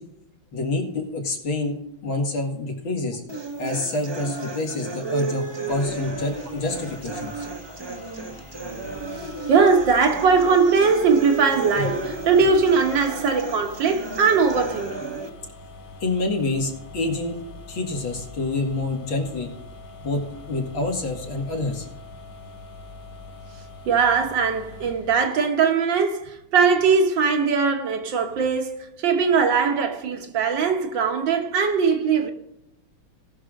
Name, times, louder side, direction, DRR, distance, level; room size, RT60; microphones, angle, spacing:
voice 1, 0.5-1.8 2.0-3.2 3.6-7.5 11.8-11.9 16.0-17.4 17.7-19.5 20.0-20.2 20.5-21.9, left 2 dB, 80° left, 2.8 m, -27 dB
sound 1, 3.3-15.3, right 3 dB, 30° right, 0.4 m, -33 dB
sound 2, 5.7-25.3, left 3 dB, 55° left, 1.0 m, -43 dB
voice 2, 9.2-15.0 23.9-32.3, right 5 dB, 70° right, 2.0 m, -20 dB
18.0 x 6.3 x 3.8 m
omnidirectional pair, 2.2 m